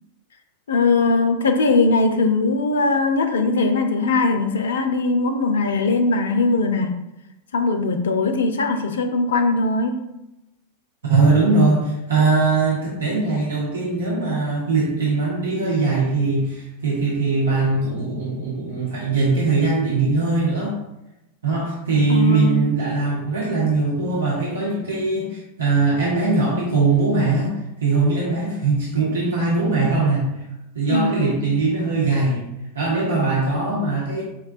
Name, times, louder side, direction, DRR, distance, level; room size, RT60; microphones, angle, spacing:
voice 1, 0.7-6.9 7.5-10.0 22.1-22.6 30.9-31.4, left 3 dB, 65° left, 6 dB, 0.3 m, -20 dB
voice 2, 11.1-20.8 21.4-27.5 27.8-30.3 30.7-32.4 32.7-34.2, right 3 dB, 70° right, -5 dB, 0.7 m, -21 dB
4.5 x 2.2 x 2.3 m, 0.91 s
figure-of-eight pair, 90°, 0 cm